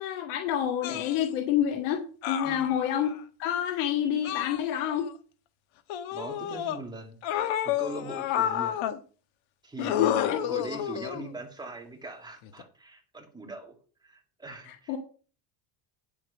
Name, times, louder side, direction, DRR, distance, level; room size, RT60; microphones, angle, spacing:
voice 1, 0.0-3.1 3.4-5.1 9.8-10.4 14.7-15.0, left 10 dB, 90° left, 3 dB, 1.9 m, -28 dB
sound 1, 0.8-1.3 2.2-3.1 4.2-5.1 5.9-6.8 7.2-9.0 9.8-11.3 12.4-12.6, left 10 dB, 65° left, 1.3 m, -30 dB
voice 2, 6.1-7.2 7.6-8.8 9.6-15.0, right 2 dB, 10° right, 2 dB, 2.3 m, -42 dB
9.6 x 7.6 x 5.1 m, 0.39 s
cardioid pair, 145°, 50 cm